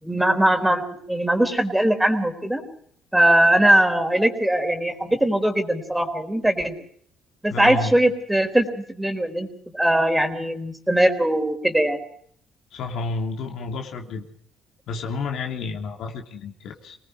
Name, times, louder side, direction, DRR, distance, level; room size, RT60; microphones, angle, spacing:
voice 1, 0.0-2.6 3.1-6.7 7.4-12.0, right 1 dB, 5° right, 5 dB, 4.0 m, -20 dB
voice 2, 7.5-7.9 12.7-14.2 14.9-17.0, left 3 dB, 75° left, 2 dB, 3.0 m, -30 dB
27.5 x 19.5 x 4.9 m, 0.62 s
cardioid pair, 85°, 0 cm